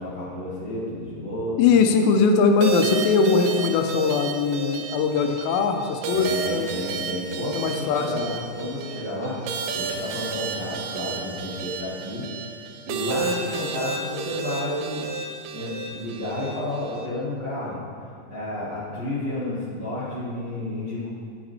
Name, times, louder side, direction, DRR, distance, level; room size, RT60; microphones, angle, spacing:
voice 1, 0.0-1.6 6.1-9.4 9.7-12.3 12.8-15.1 15.5-17.8 18.3-21.1, left 1 dB, 60° right, -11 dB, 1.1 m, -31 dB
voice 2, 1.6-6.7 7.5-8.2, left 5 dB, 80° left, 5 dB, 2.7 m, -21 dB
sound 1, 2.6-17.1, right 5 dB, 80° right, 2.8 m, -32 dB
11.0 x 8.6 x 2.7 m, 2.2 s
omnidirectional pair, 5.2 m